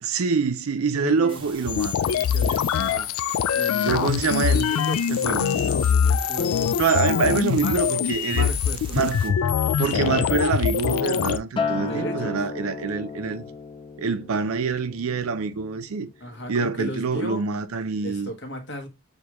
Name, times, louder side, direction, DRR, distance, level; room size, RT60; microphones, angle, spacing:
voice 1, 0.0-2.0 3.8-4.7 5.1-5.6 6.8-8.5 8.9-9.4 9.8-13.4 14.0-16.1 16.5-18.3, right 5 dB, 85° right, 0.5 m, -25 dB
voice 2, 0.9-1.4 2.0-5.2 5.6-6.9 7.6-9.3 11.8-12.4 16.2-17.4 18.0-18.9, equal, 55° left, 1.1 m, -36 dB
sound 1, 1.3-9.3, right 4 dB, 25° right, 0.6 m, -44 dB
sound 2, 1.7-11.4, left 8 dB, 90° left, 0.3 m, -23 dB
Acoustic guitar, 11.6-16.0 16.4-16.8, left 4 dB, 25° left, 0.5 m, -33 dB
6.6 x 2.3 x 2.9 m
head